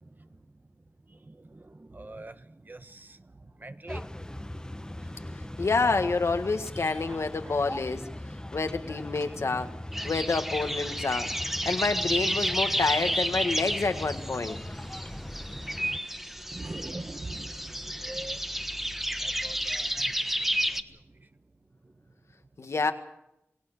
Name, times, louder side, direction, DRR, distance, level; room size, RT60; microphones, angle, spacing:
voice 1, 0.0-0.4 1.1-5.6 6.0-6.1 7.0-7.7 16.5-18.9 19.2-21.3 21.8-21.9, right 2 dB, 40° right, 10 dB, 1.3 m, -45 dB
sound 1, 3.9-16.0, left 1 dB, 15° left, 1.0 m, -40 dB
voice 2, 5.6-8.1 8.5-9.7 10.0-11.3 11.7-14.6 22.6-22.9, left 4 dB, 85° left, 7 dB, 1.7 m, -28 dB
sound 2, 9.9-20.8, equal, 5° right, 1.4 m, -31 dB
27.0 x 18.5 x 6.7 m, 0.81 s
wide cardioid pair, 50°, 5 cm